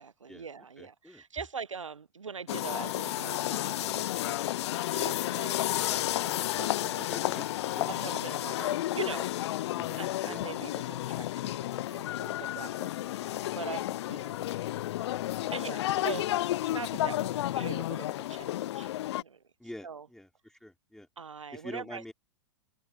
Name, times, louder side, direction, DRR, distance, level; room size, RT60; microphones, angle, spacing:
voice 1, 0.0-7.1 7.9-9.3 10.0-14.3 15.5-16.3 16.7-18.9 19.2-19.4 19.8-20.1 21.2-22.0, right 5 dB, 90° right, 0.8 m, -42 dB
voice 2, 0.8-1.2 6.8-7.9 9.8-10.4 19.6-21.1 21.5-22.1, left 1 dB, 5° left, 3.4 m, -46 dB
sound 1, 2.5-19.2, left 14 dB, 60° left, 0.5 m, -32 dB
hypercardioid pair, 100°, 16 cm